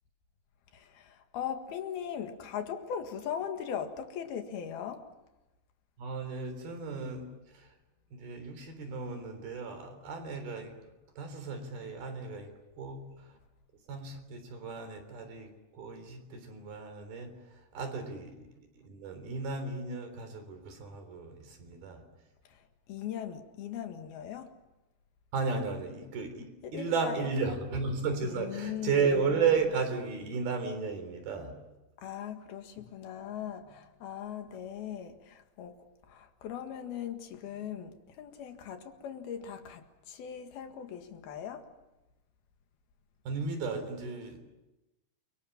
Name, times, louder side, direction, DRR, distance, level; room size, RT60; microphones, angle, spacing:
voice 1, 0.7-5.1 22.5-22.6 22.9-24.5 26.6-27.6 28.2-28.9 32.0-35.8 36.1-41.7, left 8 dB, 85° left, 3.7 m, -39 dB
voice 2, 6.0-7.7 8.1-13.4 13.9-22.0 25.3-26.5 26.7-31.6 43.3-44.4, right 5 dB, 80° right, 5.6 m, -34 dB
29.0 x 24.5 x 7.3 m
omnidirectional pair, 4.3 m